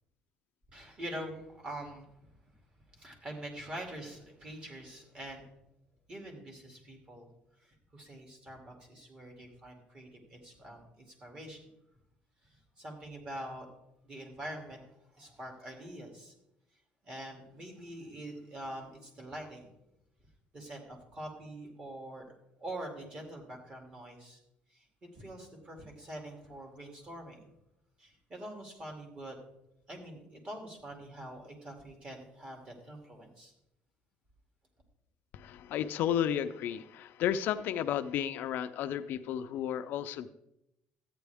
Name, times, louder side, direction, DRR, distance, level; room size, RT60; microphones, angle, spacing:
voice 1, 0.7-2.1 2.9-5.4 6.1-7.3 7.6-11.6 12.8-13.7 14.0-14.8 15.2-16.3 17.0-19.7 20.5-22.2 22.6-24.4 24.7-24.9 25.1-27.5 28.0-29.4 29.9-33.5, right 1 dB, 30° right, 2 dB, 2.5 m, -45 dB
voice 2, 35.3-40.3, left 10 dB, 60° left, 10 dB, 0.5 m, -33 dB
13.5 x 9.1 x 3.5 m, 0.84 s
cardioid pair, 150°, 4 cm